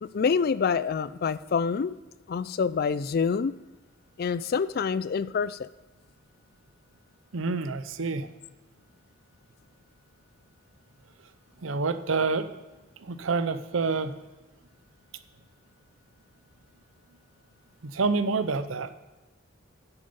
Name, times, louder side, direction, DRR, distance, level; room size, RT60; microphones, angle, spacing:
voice 1, 0.0-1.9 2.3-3.6 4.2-5.7, left 5 dB, 50° left, 16 dB, 0.3 m, -26 dB
voice 2, 7.3-8.3 11.6-12.5 13.0-14.1 17.8-18.9, right 4 dB, 75° right, 11 dB, 0.7 m, -27 dB
9.9 x 8.0 x 5.3 m, 1.2 s
head